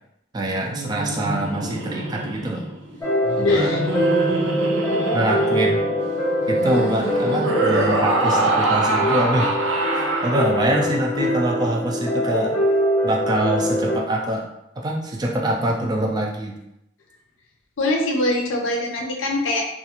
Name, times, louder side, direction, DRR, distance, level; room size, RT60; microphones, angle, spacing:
voice 1, 0.3-2.6 3.4-3.7 5.1-5.9 6.5-9.5 9.9-12.6 13.0-14.5 14.8-16.5, right 1 dB, 20° right, 0 dB, 0.3 m, -24 dB
Laughter, 0.6-11.1, right 2 dB, 75° right, 0.5 m, -25 dB
sound 1, 3.0-14.0, equal, 15° left, 0.8 m, -23 dB
voice 2, 3.4-3.8 17.8-19.7, left 2 dB, 85° left, 1 dB, 0.5 m, -22 dB
2.4 x 2.4 x 2.8 m, 0.83 s
head